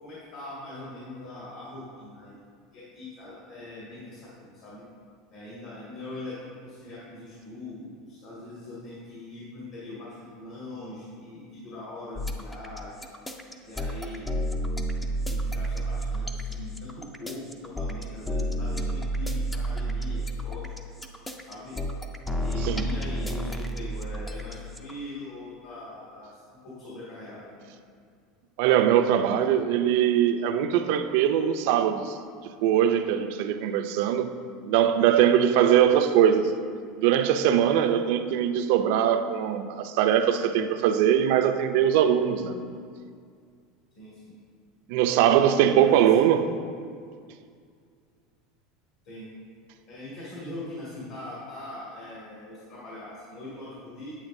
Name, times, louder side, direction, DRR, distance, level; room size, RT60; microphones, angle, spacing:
voice 1, 0.0-2.4 2.7-4.8 5.3-13.0 13.6-14.3 15.2-20.7 21.4-21.8 22.3-27.7 43.9-44.4 45.8-46.2 49.0-49.3 49.9-54.1, left 1 dB, 55° left, 2.2 m, -41 dB
sound 1, 12.2-24.9, right 1 dB, 5° left, 0.4 m, -30 dB
voice 2, 28.6-32.2 32.4-34.3 34.7-36.5 37.0-42.6 44.9-46.5, right 9 dB, 60° right, 0.4 m, -22 dB
8.8 x 8.6 x 2.6 m
supercardioid pair, 165°, 0 cm